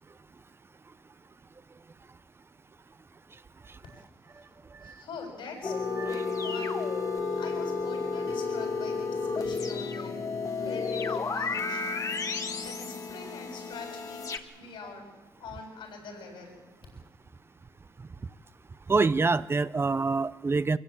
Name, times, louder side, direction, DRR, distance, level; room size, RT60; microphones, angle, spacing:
voice 1, 4.8-6.8 7.2-10.2 10.6-12.0 12.6-15.1 15.4-16.6, left 4 dB, 80° left, 2 dB, 7.9 m, -44 dB
sound 1, 5.6-14.4, left 4 dB, 40° left, 1.7 m, -32 dB
voice 2, 18.9-20.8, right 4 dB, 30° right, 15 dB, 0.7 m, -25 dB
24.0 x 15.5 x 8.8 m, 1.2 s
cardioid pair, 85°, 8 cm